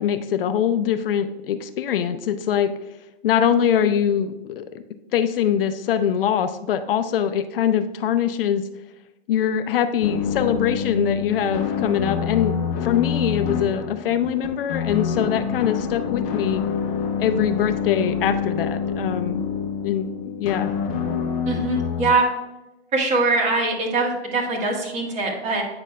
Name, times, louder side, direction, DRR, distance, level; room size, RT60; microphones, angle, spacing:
voice 1, 0.0-2.7 3.2-4.8 5.1-8.6 9.3-12.5 12.8-16.6 17.2-19.4 19.8-20.7, left 9 dB, 60° left, 10 dB, 0.5 m, -23 dB
sound 1, 10.0-22.1, left 7 dB, 35° left, 1.1 m, -26 dB
voice 2, 21.4-22.2 22.9-25.6, right 3 dB, 20° right, -1 dB, 1.6 m, -22 dB
8.6 x 6.0 x 2.2 m, 0.99 s
hypercardioid pair, 130°, 32 cm